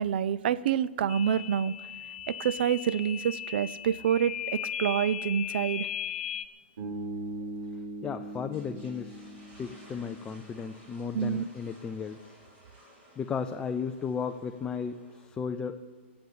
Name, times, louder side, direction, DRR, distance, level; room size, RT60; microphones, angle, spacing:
voice 1, 0.0-1.8 2.3-5.9 11.1-11.5, right 9 dB, 55° right, 18 dB, 0.5 m, -27 dB
sound 1, 1.1-6.5, left 10 dB, 60° left, 0.7 m, -37 dB
Bass guitar, 6.8-10.9, right 2 dB, 90° right, 5.0 m, -40 dB
voice 2, 8.0-9.3 9.6-12.2 13.2-15.8, left 6 dB, 10° left, 7 dB, 0.4 m, -35 dB
sound 2, 8.2-15.2, equal, 25° right, 3.7 m, -56 dB
14.5 x 8.0 x 8.6 m, 1.4 s
hypercardioid pair, 160°, 6 cm